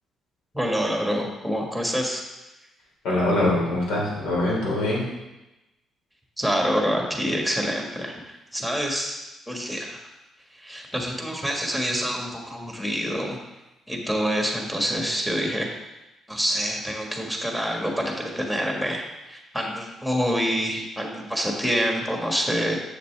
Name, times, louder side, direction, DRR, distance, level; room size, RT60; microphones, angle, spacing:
voice 1, 0.5-2.2 6.4-9.2 9.5-10.0 10.5-13.4 13.9-15.7 16.3-22.8, equal, 5° left, 0 dB, 1.6 m, -26 dB
voice 2, 3.0-5.1, left 1 dB, 85° left, -4 dB, 2.9 m, -23 dB
7.4 x 6.6 x 3.4 m, 0.99 s
cardioid pair, 90°, 0 cm